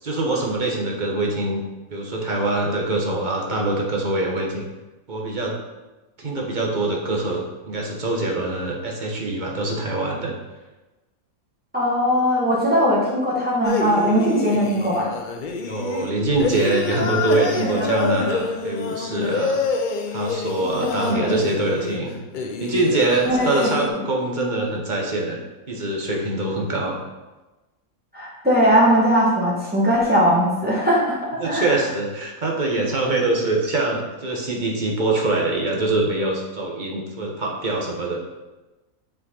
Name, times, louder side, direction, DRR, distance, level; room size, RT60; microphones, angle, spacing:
voice 1, 0.0-1.6 1.9-4.6 5.1-5.6 6.2-7.4 7.7-10.3 15.6-19.6 20.1-22.2 22.6-25.4 25.7-27.0 31.4-38.2, right 2 dB, 35° right, -1 dB, 1.2 m, -24 dB
voice 2, 11.7-15.1 17.6-18.1 20.9-21.3 23.2-23.7 28.1-31.7, equal, 5° right, -7 dB, 2.0 m, -20 dB
sound 1, 13.6-23.9, left 4 dB, 60° left, 0.5 m, -27 dB
6.2 x 5.0 x 4.3 m, 1.1 s
omnidirectional pair, 1.5 m